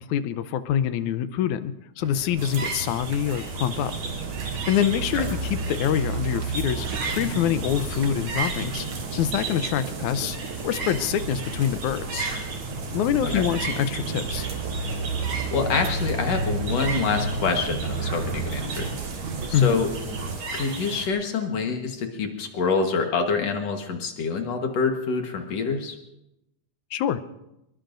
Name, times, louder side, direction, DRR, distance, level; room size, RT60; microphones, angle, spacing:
voice 1, 0.0-3.9 4.7-8.9 9.1-10.4 10.6-12.3 12.9-14.5 19.5-19.8 26.9-27.2, left 10 dB, 80° left, 12 dB, 2.1 m, -25 dB
sound 1, 2.0-20.4, right 3 dB, 60° right, 1.5 m, -32 dB
sound 2, 2.4-21.1, right 3 dB, 75° right, 4.1 m, -35 dB
voice 2, 15.5-18.9 19.5-19.9 20.5-26.0, left 4 dB, 60° left, 4 dB, 2.4 m, -26 dB
24.5 x 22.5 x 2.6 m, 0.89 s
omnidirectional pair, 3.5 m